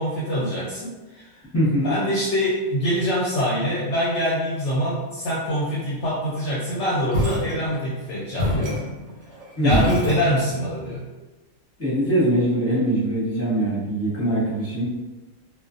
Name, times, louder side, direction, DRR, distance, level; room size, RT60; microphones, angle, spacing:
voice 1, 0.0-1.4 1.8-8.8 9.6-11.0, equal, 65° left, -7 dB, 0.8 m, -24 dB
voice 2, 1.5-2.0 9.6-9.9 11.8-14.9, right 1 dB, 10° left, -9 dB, 0.9 m, -22 dB
sound 1, 7.1-8.0 8.4-10.8, left 1 dB, 70° right, 1.2 m, -26 dB
2.5 x 2.3 x 2.4 m, 1.2 s
omnidirectional pair, 1.5 m